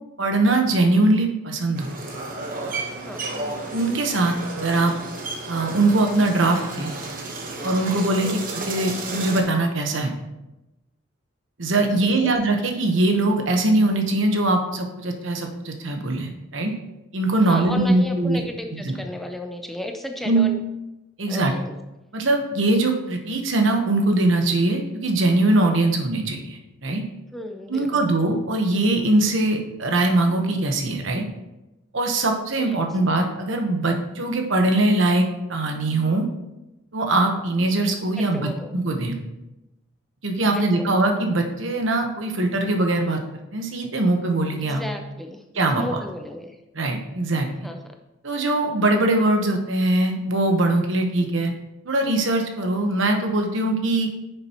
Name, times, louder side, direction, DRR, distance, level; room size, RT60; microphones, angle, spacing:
voice 1, 0.2-1.9 3.7-4.9 5.5-6.9 7.6-8.4 8.7-10.1 11.6-16.7 17.1-18.4 18.7-19.0 20.2-20.5 21.2-21.5 22.1-27.0 27.7-31.2 31.9-36.2 36.9-39.2 40.2-43.2 43.5-44.8 45.5-46.0 46.7-47.7 48.2-51.5 51.8-54.1, right 2 dB, 70° right, 3 dB, 1.1 m, -21 dB
sound 1, 1.7-9.4, right 3 dB, 45° right, 1.1 m, -32 dB
voice 2, 11.7-12.3 17.4-20.6 21.3-21.8 27.3-28.1 32.6-33.0 38.2-38.7 40.5-40.9 44.6-45.4 45.8-46.6 47.6-48.0, left 1 dB, ahead, 4 dB, 0.4 m, -34 dB
10.0 x 6.7 x 3.0 m, 0.97 s
head